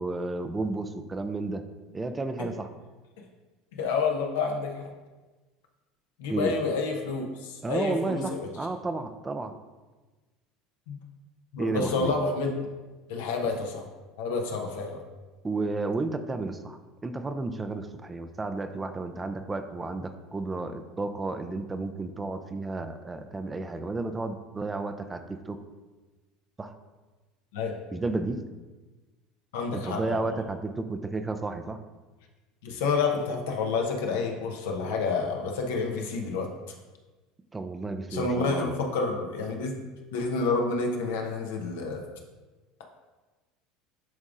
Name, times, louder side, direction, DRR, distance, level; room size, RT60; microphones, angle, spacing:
voice 1, 0.0-1.6 1.9-2.7 6.3-6.5 7.6-9.5 11.6-12.1 15.4-25.6 26.6-26.7 27.9-28.4 29.7-31.8 37.5-38.7, right 3 dB, 20° right, 8 dB, 0.5 m, -32 dB
voice 2, 3.7-4.9 6.2-8.4 10.9-11.0 11.5-12.6 13.1-13.9 14.2-15.0 27.5-27.7 29.5-30.2 32.6-36.5 38.1-39.8 40.1-42.0, left 4 dB, 80° left, 2 dB, 0.9 m, -29 dB
10.5 x 3.5 x 2.5 m, 1.2 s
hypercardioid pair, 85°, 0 cm